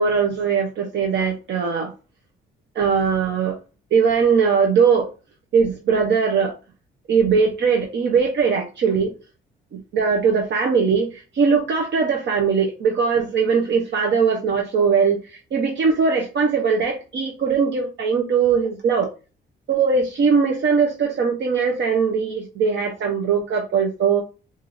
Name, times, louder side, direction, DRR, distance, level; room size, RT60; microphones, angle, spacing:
voice 1, 0.0-1.9 2.7-3.6 3.9-5.1 5.5-6.6 7.1-9.1 9.7-19.1 19.7-24.2, right 5 dB, 65° right, 1 dB, 0.8 m, -20 dB
4.6 x 2.6 x 2.6 m, 0.32 s
cardioid pair, 90°, 20 cm